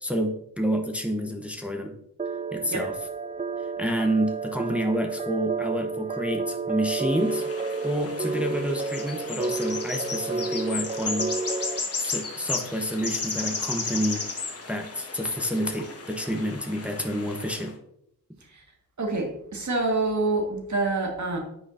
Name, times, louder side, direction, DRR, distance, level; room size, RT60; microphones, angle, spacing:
voice 1, 0.0-1.9 2.5-2.9 3.8-7.4 7.8-11.3 12.0-14.2 14.7-17.7, equal, 5° right, 3 dB, 0.8 m, -28 dB
sound 1, 2.2-11.8, right 4 dB, 20° right, 0.3 m, -31 dB
sound 2, 7.1-17.7, left 4 dB, 40° left, 1.1 m, -34 dB
voice 2, 19.0-21.4, right 2 dB, 50° right, 1 dB, 1.7 m, -26 dB
7.7 x 5.0 x 2.5 m, 0.77 s
cardioid pair, 45°, 37 cm